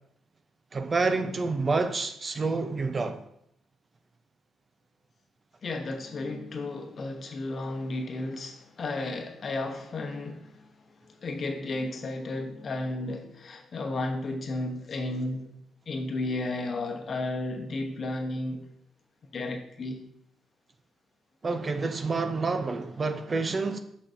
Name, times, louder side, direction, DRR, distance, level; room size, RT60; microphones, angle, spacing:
voice 1, 0.7-3.2 21.4-23.8, right 3 dB, 35° right, 0.5 m, -28 dB
voice 2, 5.6-10.7 11.0-15.5 15.9-18.6 19.3-20.1, left 2 dB, 45° left, 0.9 m, -33 dB
6.1 x 6.0 x 2.7 m
cardioid pair, 90°, 0 cm